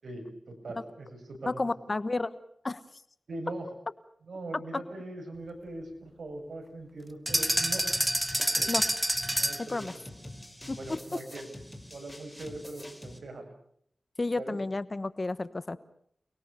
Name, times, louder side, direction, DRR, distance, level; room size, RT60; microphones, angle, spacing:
voice 1, 0.0-1.5 3.3-3.7 4.3-7.8 8.5-8.7 9.4-10.0 10.8-11.5 11.9-13.4 14.3-14.6, right 2 dB, 80° right, 4 dB, 7.5 m, -41 dB
voice 2, 1.4-2.3 2.6-2.8 8.7-8.8 9.7-9.9 10.7-10.8 14.2-15.8, left 2 dB, 40° left, 14 dB, 1.3 m, -31 dB
sound 1, 7.3-13.2, left 1 dB, 5° left, 4.6 m, -46 dB
sound 2, 7.3-9.7, right 1 dB, 10° right, 1.4 m, -27 dB
29.5 x 21.5 x 7.0 m, 0.66 s
wide cardioid pair, 60°, 0 cm